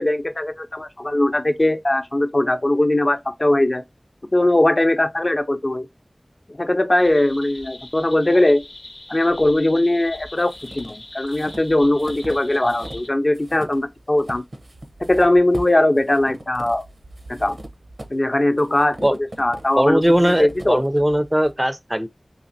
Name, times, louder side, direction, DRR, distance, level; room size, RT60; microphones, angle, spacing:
voice 1, 0.0-3.8 4.3-5.9 6.6-8.6 9.1-14.4 15.0-16.8 17.4-17.6 18.1-20.8, left 1 dB, 45° left, 0.5 m, -20 dB
sound 1, 7.0-13.1, left 2 dB, 75° left, 0.8 m, -41 dB
sound 2, 10.1-13.1 13.3-21.5, right 1 dB, 75° right, 0.8 m, -40 dB
voice 2, 19.8-22.1, equal, 15° right, 0.4 m, -19 dB
4.0 x 2.8 x 2.6 m
wide cardioid pair, 50°, 0 cm